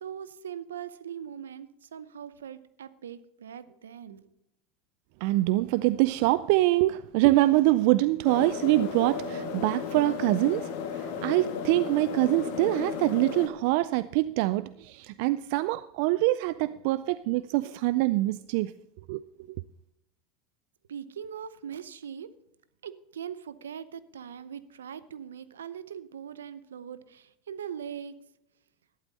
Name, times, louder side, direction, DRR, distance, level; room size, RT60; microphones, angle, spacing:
voice 1, 0.0-4.3 20.9-22.3 22.8-28.1, right 8 dB, 90° right, 0.7 m, -41 dB
voice 2, 5.2-18.7 19.1-19.2, right 18 dB, 65° right, 0.4 m, -25 dB
sound 1, 8.2-13.5, left 6 dB, 70° left, 1.7 m, -34 dB
13.0 x 11.5 x 4.1 m
hypercardioid pair, 90°, 0 cm